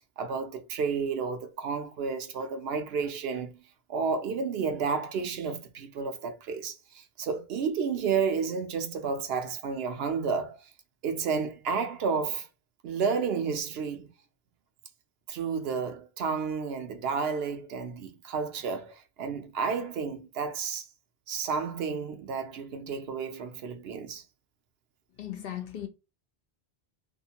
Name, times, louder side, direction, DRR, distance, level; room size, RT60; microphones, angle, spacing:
voice 1, 0.2-3.6 3.9-10.6 11.0-12.5 12.8-14.1 15.3-20.8 21.3-24.2, right 5 dB, 80° right, 0.8 m, -31 dB
voice 2, 25.2-25.9, left 11 dB, 70° left, 0.8 m, -37 dB
2.5 x 2.5 x 2.8 m
omnidirectional pair, 1.0 m